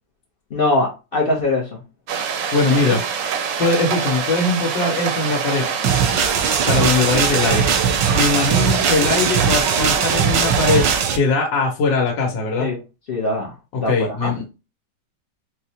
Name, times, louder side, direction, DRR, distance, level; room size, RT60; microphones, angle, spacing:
voice 1, 0.5-1.8 2.7-3.0 12.6-12.8 13.1-13.5 13.8-14.3, left 2 dB, 60° left, 0.6 m, -22 dB
sound 1, 2.1-11.0, right 6 dB, 70° right, 0.8 m, -25 dB
voice 2, 2.5-3.0 3.6-5.7 6.7-7.7 8.1-10.8 11.1-12.7 13.7-14.5, left 3 dB, 80° left, 1.6 m, -20 dB
sound 2, 5.8-11.2, right 7 dB, 85° right, 1.3 m, -20 dB
4.6 x 2.1 x 2.7 m
omnidirectional pair, 1.9 m